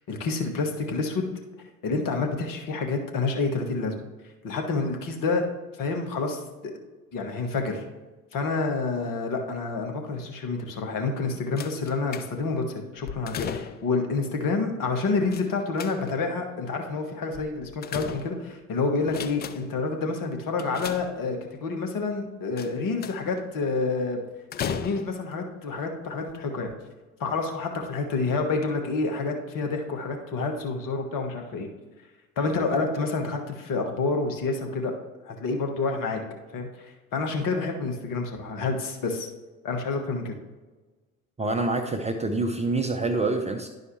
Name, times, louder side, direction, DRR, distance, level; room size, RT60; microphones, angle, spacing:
voice 1, 0.1-1.2 1.8-3.9 4.4-5.5 5.8-6.7 7.1-7.8 8.3-24.2 24.6-26.7 27.2-31.7 32.4-34.9 35.2-36.2 36.5-36.7 37.1-39.3 39.6-40.3, left 3 dB, 45° left, 3 dB, 1.5 m, -28 dB
sound 1, 11.6-12.6 13.0-14.0 15.3-16.3 17.3-18.6 19.0-19.8 20.6-21.6 22.6-23.4 24.5-25.4 26.2-26.3 26.6-26.7, left 8 dB, 25° left, 0.4 m, -36 dB
voice 2, 41.4-43.7, right 3 dB, 15° right, 4 dB, 0.7 m, -26 dB
11.0 x 4.7 x 3.2 m, 1.2 s
figure-of-eight pair, 65°, 43 cm